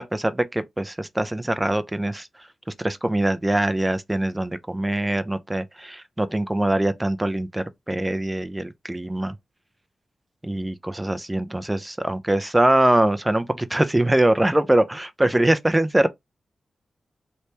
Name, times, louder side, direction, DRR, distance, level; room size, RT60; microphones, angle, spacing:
voice 1, 0.0-2.3 2.8-9.3 10.4-16.1, right 1 dB, 10° right, 0.4 m, -23 dB
3.2 x 3.0 x 2.8 m
wide cardioid pair, 100°, 0 cm